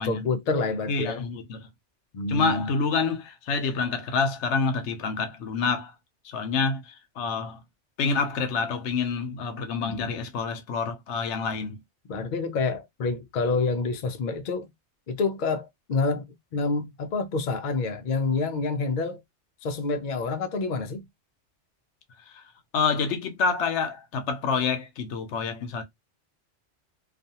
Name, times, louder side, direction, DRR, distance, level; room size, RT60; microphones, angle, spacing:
voice 1, 0.0-1.2 2.1-2.7 9.8-10.1 12.1-14.7 15.1-19.2 19.6-21.1, left 3 dB, 60° left, 0.5 m, -28 dB
voice 2, 0.9-1.7 2.3-5.9 6.2-7.6 8.0-11.8 22.3-22.4 22.7-25.8, left 5 dB, 75° left, 0.9 m, -27 dB
2.4 x 2.3 x 2.7 m
omnidirectional pair, 1.2 m